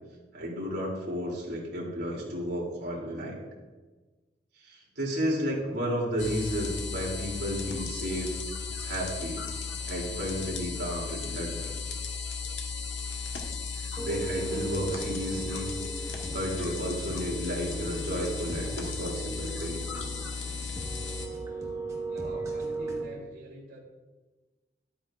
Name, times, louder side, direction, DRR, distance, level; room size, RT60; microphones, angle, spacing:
voice 1, 0.3-3.4 4.6-8.3 8.8-9.4 9.9-11.7 13.8-15.7 16.3-19.8, equal, 65° right, -3 dB, 3.1 m, -32 dB
sound 1, 6.2-21.3, left 5 dB, 90° left, 1.4 m, -36 dB
sound 2, 14.0-23.0, right 3 dB, 20° right, 1.4 m, -37 dB
voice 2, 22.1-23.8, right 1 dB, 80° right, -4 dB, 2.3 m, -45 dB
12.0 x 8.8 x 2.5 m, 1.2 s
head